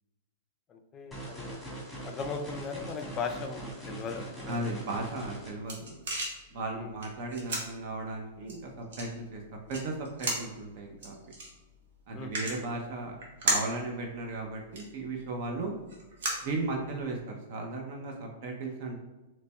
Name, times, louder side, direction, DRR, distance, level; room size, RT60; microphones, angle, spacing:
voice 1, 0.7-1.6 2.0-4.8 6.8-7.0 12.1-12.4 16.7-16.8, left 4 dB, 30° left, 5 dB, 0.4 m, -38 dB
sound 1, 1.1-5.5, right 1 dB, ahead, 1.4 m, -42 dB
voice 2, 4.5-6.0 6.5-9.4 9.7-11.3 12.1-13.2 13.4-15.7 16.4-19.0, right 2 dB, 55° right, 1 dB, 0.6 m, -36 dB
sound 2, 5.1-17.2, right 2 dB, 70° right, 1.1 m, -38 dB
4.0 x 3.0 x 2.2 m, 1.1 s
hypercardioid pair, 125°, 0 cm